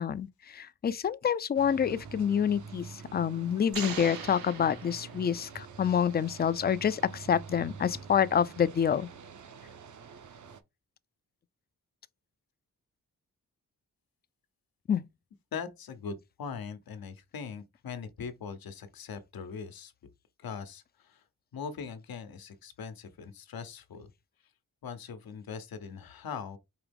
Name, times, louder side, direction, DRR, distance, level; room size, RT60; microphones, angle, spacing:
voice 1, 0.0-9.1 14.9-15.0, left 8 dB, 30° left, 0.4 m, -27 dB
sound 1, 1.5-10.6, right 5 dB, 55° right, 0.7 m, -47 dB
sound 2, 3.7-5.6, right 6 dB, 75° right, 1.1 m, -40 dB
voice 2, 15.5-19.9 20.4-21.2 21.5-24.1 24.8-26.6, left 6 dB, 80° left, 0.8 m, -41 dB
4.7 x 3.0 x 3.4 m
cardioid pair, 80°, 35 cm